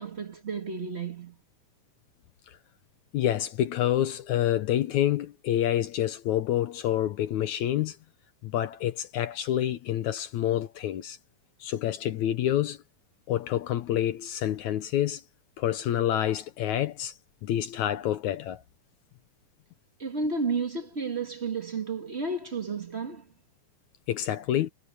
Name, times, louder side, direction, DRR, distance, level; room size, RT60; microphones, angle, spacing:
voice 1, 0.0-1.4 20.0-23.3, right 4 dB, 40° right, 0.8 m, -32 dB
voice 2, 3.1-8.0 8.4-11.2 11.6-12.8 13.3-15.2 15.6-17.1 17.4-18.6 24.1-24.7, left 12 dB, 70° left, 1.9 m, -27 dB
omnidirectional pair, 4.1 m